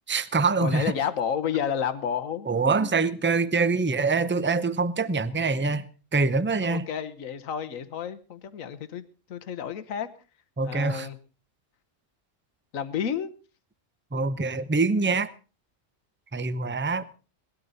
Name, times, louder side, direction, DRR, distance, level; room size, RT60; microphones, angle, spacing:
voice 1, 0.1-0.9 2.5-5.9 6.1-6.9 10.6-11.1 14.1-15.3 16.3-17.1, right 4 dB, 15° right, 0.5 m, -24 dB
voice 2, 0.6-2.9 5.6-5.8 6.6-9.0 9.3-10.1 10.6-11.2 12.7-13.3, left 8 dB, 85° left, 1.4 m, -31 dB
19.0 x 13.0 x 4.0 m
omnidirectional pair, 1.4 m